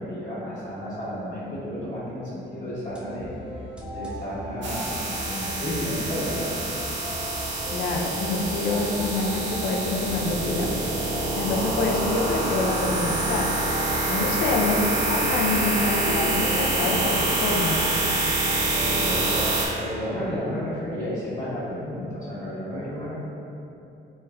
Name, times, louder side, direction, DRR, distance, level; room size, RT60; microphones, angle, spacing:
voice 1, 0.0-3.3 3.9-6.4 18.7-19.5 19.8-23.1, equal, 45° left, -15 dB, 1.2 m, -32 dB
sound 1, 2.8-19.7, left 1 dB, 5° right, 0.5 m, -37 dB
sound 2, 4.6-19.7, right 2 dB, 65° right, 0.6 m, -26 dB
voice 2, 7.7-10.7 11.4-13.5 14.1-17.9, left 3 dB, 85° left, 0 dB, 0.5 m, -26 dB
3.3 x 3.1 x 2.2 m, 2.8 s
cardioid pair, 90°, 20 cm